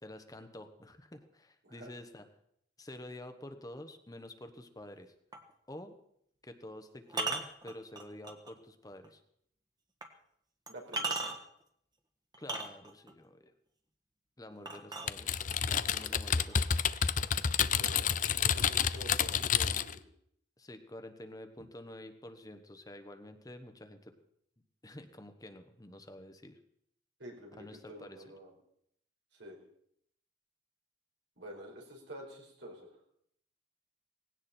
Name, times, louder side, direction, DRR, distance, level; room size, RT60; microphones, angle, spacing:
voice 1, 0.0-2.3 2.8-5.1 5.7-6.0 6.4-9.2 12.4-13.5 14.4-15.4 15.7-16.8 20.6-24.1 24.8-26.6 27.6-28.2, left 1 dB, 20° left, 7 dB, 1.1 m, -49 dB
sound 1, 5.3-5.5 7.1-8.5 9.0-9.1 10.0-10.1 10.7-11.6 12.3-13.1 14.7-15.6 16.5-16.6 17.0-17.5 17.7-18.7, right 3 dB, 20° right, 1.5 m, -38 dB
voice 2, 10.7-11.3 17.6-20.0 27.2-28.5 29.3-29.6 31.4-32.9, right 1 dB, 80° right, 0 dB, 5.0 m, -49 dB
Typing, 15.1-20.0, left 7 dB, 45° left, 0.6 m, -29 dB
18.5 x 16.5 x 4.4 m, 0.71 s
head